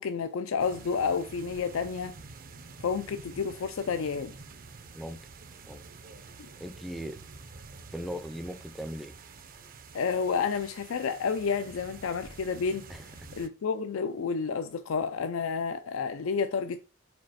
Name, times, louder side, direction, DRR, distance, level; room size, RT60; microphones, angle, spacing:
voice 1, 0.0-2.2 2.8-4.3 9.9-12.9 13.4-16.8, left 5 dB, 80° left, 0.4 m, -30 dB
sound 1, 0.6-13.5, right 4 dB, 45° right, 0.6 m, -48 dB
voice 2, 4.9-5.2 5.7-5.8 6.6-7.2 7.9-9.1 12.9-13.3, equal, ahead, 0.4 m, -39 dB
5.1 x 4.1 x 4.6 m
head